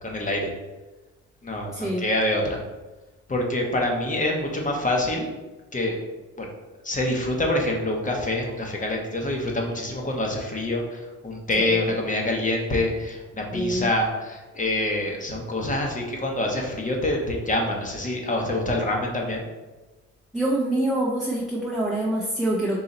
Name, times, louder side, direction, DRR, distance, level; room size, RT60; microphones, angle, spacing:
voice 1, 0.0-0.5 1.4-2.6 3.3-5.3 5.7-6.0 6.4-6.5 6.8-19.5, left 1 dB, 25° left, 0 dB, 1.0 m, -26 dB
voice 2, 1.7-2.1 11.5-11.9 13.5-13.9 20.3-22.8, right 1 dB, ahead, -5 dB, 0.7 m, -25 dB
3.9 x 2.7 x 4.2 m, 1.2 s
cardioid pair, 90°, 30 cm